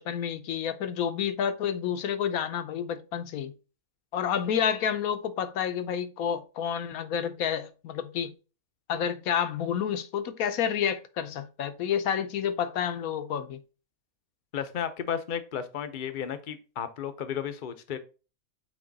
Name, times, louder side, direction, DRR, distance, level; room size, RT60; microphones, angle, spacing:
voice 1, 0.0-3.5 4.1-8.3 8.9-13.6, left 8 dB, 80° left, 1.2 m, -29 dB
voice 2, 14.5-18.0, left 8 dB, 45° left, 0.7 m, -33 dB
8.5 x 3.0 x 4.0 m
omnidirectional pair, 1.5 m